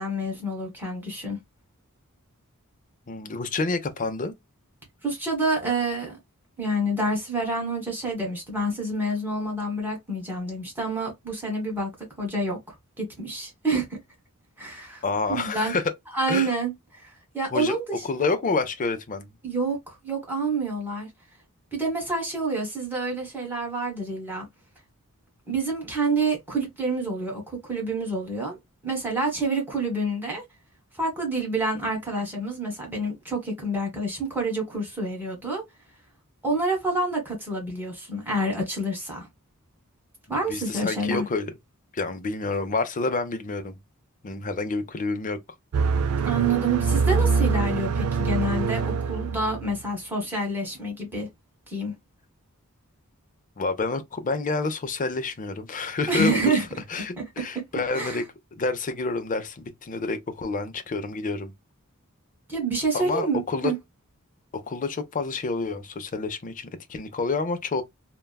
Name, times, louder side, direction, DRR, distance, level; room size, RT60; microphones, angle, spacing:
voice 1, 0.0-1.4 5.0-6.2 6.6-11.9 12.2-12.6 13.0-14.0 14.6-15.0 15.3-15.7 16.1-18.3 19.4-21.1 21.7-24.5 25.5-28.6 28.8-30.4 31.0-35.6 36.4-39.3 40.3-41.3 46.2-51.3 51.7-51.9 56.1-56.6 57.2-57.3 57.5-57.6 57.9-58.2 62.5-63.8, right 2 dB, 10° right, 1.4 m, -28 dB
voice 2, 3.1-4.3 15.0-15.9 16.3-16.5 17.5-17.8 18.0-19.3 40.3-41.5 41.9-43.8 44.2-45.4 53.6-58.3 58.6-61.5 62.9-63.7 64.5-67.8, left 3 dB, 35° left, 0.5 m, -28 dB
sound 1, 45.7-49.8, right 5 dB, 70° right, 0.4 m, -24 dB
3.4 x 2.2 x 2.2 m
head